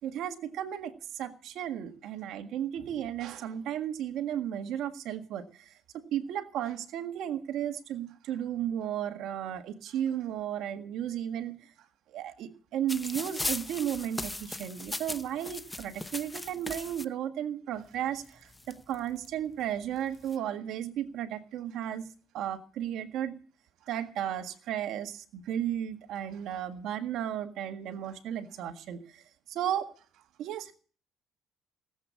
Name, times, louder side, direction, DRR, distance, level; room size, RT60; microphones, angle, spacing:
voice 1, 0.0-11.7 12.1-22.1 22.3-23.4 23.9-29.9 30.4-30.7, right 10 dB, 75° right, 7 dB, 1.8 m, -34 dB
sound 1, 12.9-17.0 18.0-18.1 18.3-19.3 20.0-20.3, left 2 dB, 10° left, 0.8 m, -38 dB
18.5 x 8.2 x 8.5 m, 0.40 s
cardioid pair, 95°, 0 cm